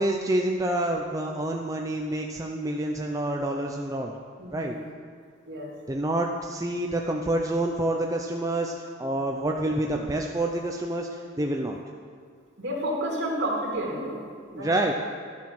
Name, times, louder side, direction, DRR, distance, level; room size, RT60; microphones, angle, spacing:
voice 1, 0.0-4.1 4.5-4.7 5.9-11.8 14.5-14.9, right 1 dB, 15° right, 1 dB, 0.5 m, -28 dB
voice 2, 4.4-4.8 5.5-5.7 12.6-14.2 14.5-14.7, right 1 dB, 60° right, -4 dB, 2.9 m, -30 dB
12.0 x 7.3 x 6.0 m, 2.2 s
head